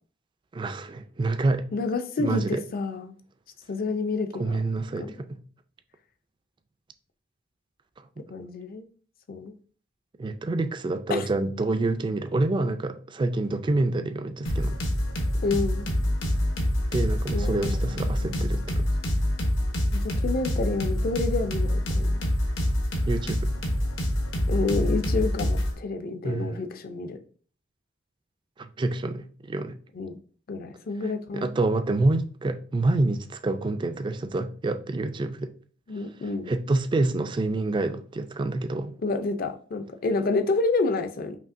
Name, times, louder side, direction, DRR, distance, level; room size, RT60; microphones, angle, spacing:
voice 1, 0.5-1.7 2.2-2.6 4.4-5.4 10.2-14.8 16.9-18.8 23.1-23.5 26.2-26.6 28.6-29.8 31.3-35.5 36.5-38.9, right 2 dB, 25° right, 0.3 m, -27 dB
voice 2, 1.7-3.1 3.7-4.6 5.0-5.1 8.3-8.8 9.3-9.5 11.1-11.3 15.4-15.9 17.3-18.6 19.9-22.2 24.5-27.2 29.9-30.2 30.5-31.5 35.9-36.5 39.0-41.4, left 3 dB, 50° left, 0.5 m, -29 dB
sound 1, 14.5-25.7, equal, 75° left, 1.0 m, -26 dB
5.2 x 2.7 x 2.5 m
head